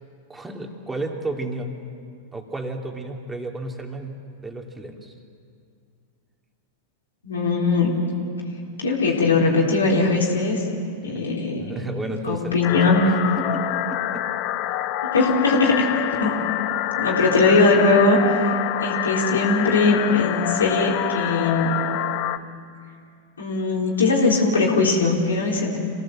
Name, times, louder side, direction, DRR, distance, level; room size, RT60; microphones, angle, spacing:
voice 1, 0.3-1.8 2.3-5.1 11.1-11.3 11.6-12.6 12.9-13.0 13.4-14.2, right 2 dB, 10° right, 2 dB, 2.8 m, -32 dB
voice 2, 7.2-7.9 8.8-10.6 11.0-11.8 12.2-13.0 15.1-15.9 16.2-16.4 17.0-18.5 18.8-21.8 23.4-25.8, left 3 dB, 85° left, -2 dB, 3.8 m, -20 dB
sound 1, 12.6-22.4, left 14 dB, 50° left, 0.9 m, -27 dB
27.0 x 18.0 x 7.6 m, 2.3 s
hypercardioid pair, 100°, 0 cm